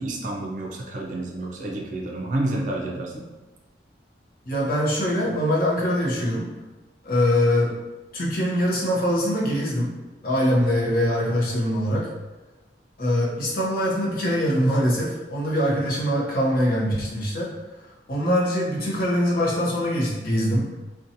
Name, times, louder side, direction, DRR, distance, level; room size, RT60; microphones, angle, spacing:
voice 1, 0.0-3.2, right 1 dB, 45° right, -1 dB, 0.4 m, -29 dB
voice 2, 4.5-6.5 7.0-7.7 8.1-9.9 10.2-12.1 13.0-17.5 18.1-20.7, equal, 55° left, -5 dB, 0.6 m, -23 dB
2.7 x 2.2 x 2.6 m, 1.2 s
head